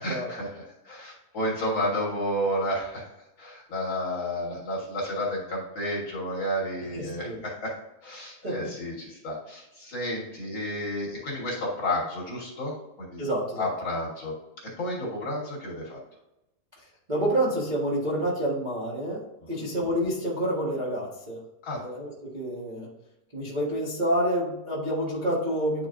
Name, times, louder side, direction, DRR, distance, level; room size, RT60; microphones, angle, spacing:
voice 1, 0.0-3.1 3.4-7.7 8.0-13.3 13.6-14.3 14.8-16.0 19.6-19.7 21.6-21.8, left 1 dB, 50° left, -4 dB, 1.7 m, -31 dB
voice 2, 6.9-7.4 8.4-8.7 13.2-13.7 16.8-21.4 21.7-22.9 23.3-25.9, right 1 dB, 60° right, -6 dB, 0.4 m, -28 dB
10.0 x 4.1 x 2.6 m, 0.95 s
omnidirectional pair, 3.7 m